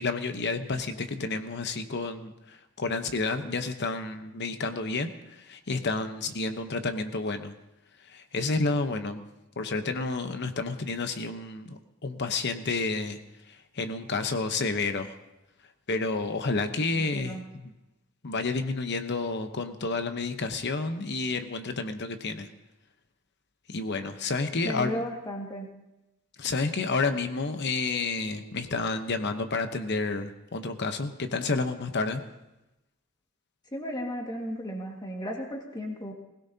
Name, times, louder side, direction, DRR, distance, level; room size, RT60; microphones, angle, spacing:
voice 1, 0.0-7.5 8.1-9.2 9.6-13.2 13.7-15.1 15.9-17.7 18.2-22.5 23.7-25.0 26.4-32.2, left 3 dB, 55° left, 7 dB, 0.9 m, -30 dB
voice 2, 17.0-17.4 24.6-25.7 33.7-36.1, equal, 20° left, 1 dB, 1.8 m, -34 dB
20.0 x 17.0 x 2.8 m, 0.97 s
head